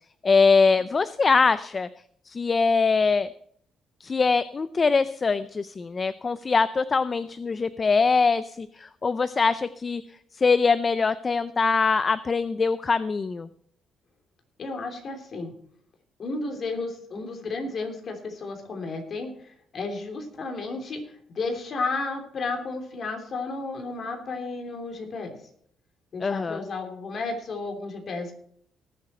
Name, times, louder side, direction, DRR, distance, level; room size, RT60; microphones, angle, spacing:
voice 1, 0.2-1.9 2.3-3.3 4.0-10.0 10.4-13.5 26.2-26.6, left 4 dB, 35° left, 14 dB, 0.5 m, -23 dB
voice 2, 14.6-15.5 16.2-25.3 26.1-28.3, left 3 dB, 50° left, 4 dB, 3.2 m, -33 dB
19.0 x 7.7 x 4.4 m, 0.64 s
cardioid pair, 90°, 0 cm